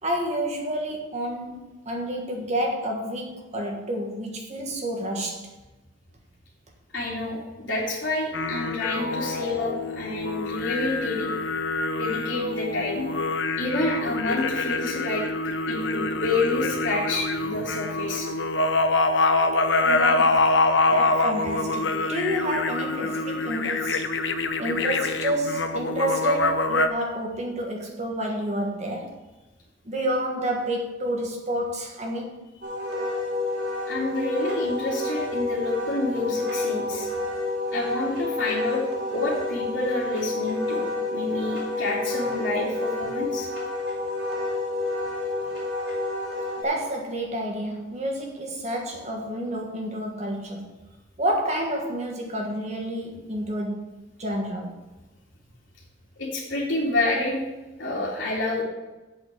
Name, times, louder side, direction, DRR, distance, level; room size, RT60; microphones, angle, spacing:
voice 1, 0.0-5.5 19.8-20.5 20.9-24.1 24.6-29.2 29.8-32.4 46.6-50.7 51.2-53.8 54.2-54.7, right 1 dB, 35° right, 1.4 m, -29 dB
voice 2, 6.9-11.3 12.0-13.1 13.6-15.2 15.7-18.3 33.9-37.1 37.7-38.8 39.1-43.5 56.2-57.4 57.8-58.6, left 2 dB, 90° left, 2.7 m, -28 dB
sound 1, 8.3-26.9, left 3 dB, 75° left, 0.8 m, -25 dB
Wind instrument woodwind instrument, 32.6-46.6, left 2 dB, 75° right, 3.7 m, -29 dB
8.0 x 6.6 x 8.2 m
head